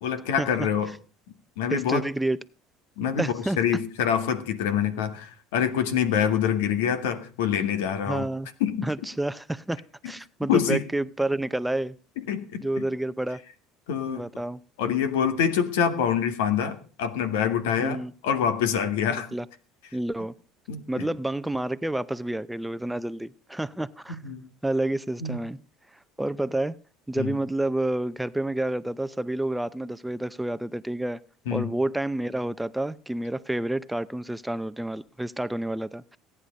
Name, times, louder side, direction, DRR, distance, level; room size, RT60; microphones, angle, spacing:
voice 1, 0.0-0.9 1.6-2.0 3.0-8.3 8.6-8.9 10.5-10.8 12.3-12.6 13.9-14.2 14.8-19.3 20.7-21.1 24.2-24.5 25.2-25.4 27.2-27.3 31.5-31.7, left 8 dB, 90° left, 9 dB, 2.0 m, -26 dB
voice 2, 1.7-2.4 3.2-3.6 8.1-8.5 8.8-12.0 12.6-13.4 14.1-14.6 17.8-18.1 19.1-19.5 19.9-20.3 20.9-24.3 24.6-25.6 26.2-26.8 27.1-31.2 31.5-36.2, right 1 dB, 5° right, 14 dB, 0.6 m, -29 dB
17.0 x 9.8 x 5.2 m, 0.38 s
supercardioid pair, 105°, 0 cm